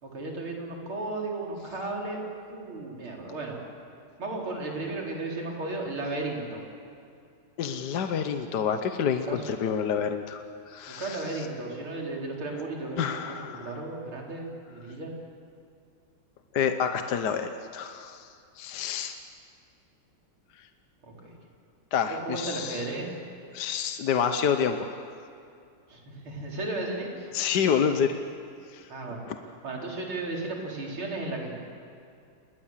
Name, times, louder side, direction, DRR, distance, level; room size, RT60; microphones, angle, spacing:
voice 1, 0.0-2.2 2.5-3.6 4.2-6.6 9.3-9.4 11.0-15.1 21.0-21.3 22.1-23.1 25.9-27.3 28.9-29.2 29.6-31.5, right 2 dB, 75° right, -1 dB, 4.8 m, -34 dB
voice 2, 7.6-11.5 13.0-13.8 16.5-18.3 18.6-19.2 21.9-22.9 23.5-25.0 27.3-28.1 28.7-28.9 29.3-29.4, left 7 dB, 60° left, 7 dB, 1.4 m, -28 dB
28.5 x 21.5 x 7.4 m, 2.4 s
omnidirectional pair, 2.3 m